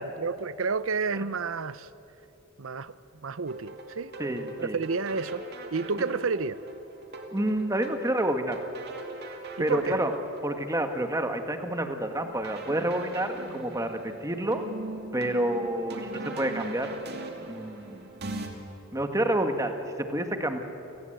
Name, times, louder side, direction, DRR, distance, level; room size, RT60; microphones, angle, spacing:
voice 1, 0.0-1.9 2.6-3.0 3.2-4.1 4.6-5.4 5.7-6.6 9.6-10.0, right 4 dB, 75° right, 0.7 m, -30 dB
sound 1, 3.5-18.5, right 2 dB, 55° right, 2.5 m, -41 dB
voice 2, 4.2-4.8 7.3-8.6 9.6-10.1 10.4-14.6 15.1-16.9 17.5-18.1 18.9-20.6, right 1 dB, 15° right, 1.6 m, -29 dB
29.5 x 19.0 x 7.9 m
head